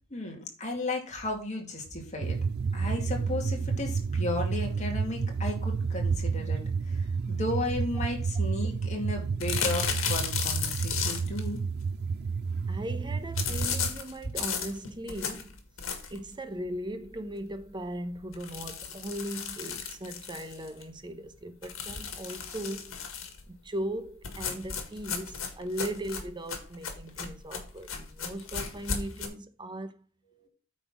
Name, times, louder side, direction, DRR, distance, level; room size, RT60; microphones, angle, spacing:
voice 1, 0.1-2.4 2.7-6.6 6.9-11.6 30.4-30.5, left 2 dB, 35° left, 2.3 m, -34 dB
sound 1, 2.2-13.9, right 5 dB, 50° right, 0.4 m, -30 dB
sound 2, 9.4-11.5 13.4-16.3 16.7-16.8 17.2-17.3 17.5-17.6 18.3-20.8 21.6-23.4 24.2-29.3, left 6 dB, 80° left, 1.8 m, -35 dB
voice 2, 12.7-15.6 16.1-22.9 23.5-30.0, right 1 dB, 25° right, 0.8 m, -38 dB
9.1 x 4.2 x 6.1 m
head